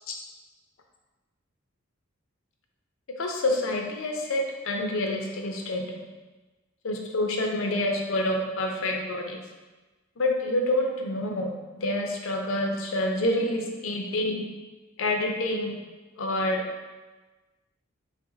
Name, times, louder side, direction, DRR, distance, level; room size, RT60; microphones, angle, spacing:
voice 1, 3.2-5.9 6.8-9.4 10.2-14.5 15.0-15.7 16.2-16.6, left 1 dB, 75° left, 2 dB, 0.5 m, -27 dB
5.6 x 2.1 x 2.7 m, 1.2 s
head